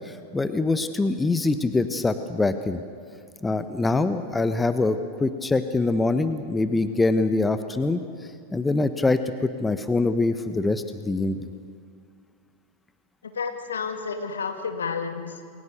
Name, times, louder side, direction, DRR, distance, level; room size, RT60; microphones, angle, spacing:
voice 1, 0.0-2.8 3.4-8.0 8.5-11.5, left 3 dB, 10° left, 10 dB, 1.1 m, -24 dB
voice 2, 13.3-15.4, left 5 dB, 70° left, 5 dB, 2.5 m, -30 dB
29.0 x 22.0 x 6.7 m, 2.2 s
figure-of-eight pair, 90°, 0 cm